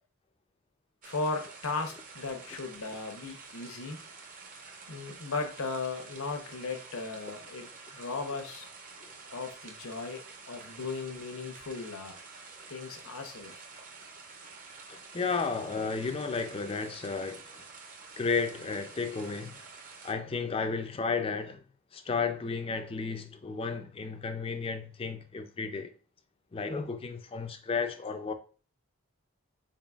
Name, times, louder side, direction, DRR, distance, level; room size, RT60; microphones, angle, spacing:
voice 1, 1.0-4.0 4.9-8.7 9.3-12.2 12.7-13.6, left 3 dB, 75° left, 0.8 m, -37 dB
sound 1, 1.0-20.1, right 4 dB, 40° right, 0.6 m, -49 dB
voice 2, 14.9-17.4 18.2-19.6 20.0-21.6 21.9-25.9 26.5-28.3, left 4 dB, 25° left, 0.3 m, -33 dB
3.9 x 3.7 x 2.3 m
head